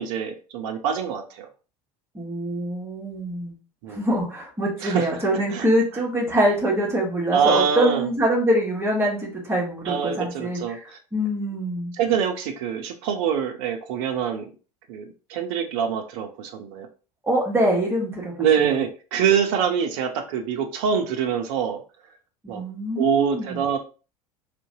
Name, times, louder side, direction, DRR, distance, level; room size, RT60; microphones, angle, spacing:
voice 1, 0.0-1.5 3.8-4.0 4.8-5.2 5.5-5.6 7.3-8.1 9.9-11.0 12.0-14.5 14.9-16.9 18.4-21.8 22.5-22.6 23.0-23.8, right 7 dB, 50° right, 6 dB, 0.5 m, -25 dB
voice 2, 2.1-3.5 3.9-11.9 17.2-18.7 22.4-23.6, right 1 dB, 10° right, -2 dB, 1.0 m, -24 dB
2.6 x 2.1 x 2.6 m, 0.35 s
figure-of-eight pair, 75°, 21 cm